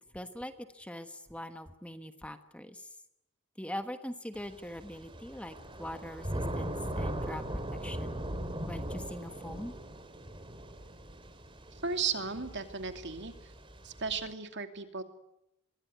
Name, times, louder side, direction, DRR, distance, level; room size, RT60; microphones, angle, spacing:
voice 1, 0.1-2.9 3.6-8.2 8.6-9.7, left 1 dB, 5° left, 8 dB, 1.3 m, -42 dB
Thunder / Rain, 4.4-14.3, right 1 dB, 25° right, 2.7 m, -40 dB
voice 2, 11.8-13.3 13.8-15.0, right 5 dB, 55° right, 7 dB, 2.7 m, -35 dB
25.0 x 22.5 x 9.5 m, 0.82 s
head